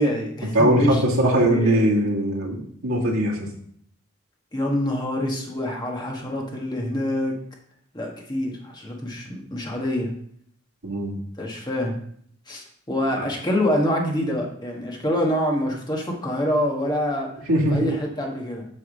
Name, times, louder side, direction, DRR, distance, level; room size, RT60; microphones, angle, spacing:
voice 1, 0.0-2.0 4.5-7.3 7.9-10.1 11.4-12.0 12.5-17.3 17.7-18.7, left 1 dB, 20° left, 0 dB, 1.3 m, -26 dB
voice 2, 0.5-3.5 10.8-11.2 13.2-13.3 17.5-17.9, right 1 dB, 80° right, -3 dB, 2.0 m, -21 dB
7.9 x 3.6 x 6.4 m, 0.65 s
head